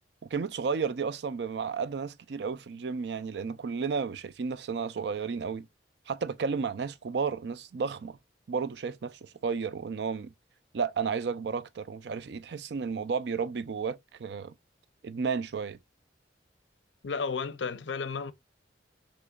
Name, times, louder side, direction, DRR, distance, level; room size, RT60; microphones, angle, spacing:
voice 1, 0.3-5.7 6.1-8.2 8.5-10.3 10.7-14.5 15.0-15.8, right 5 dB, 65° right, 0.4 m, -32 dB
voice 2, 17.0-18.3, left 5 dB, 85° left, 0.6 m, -33 dB
6.3 x 3.0 x 2.3 m
head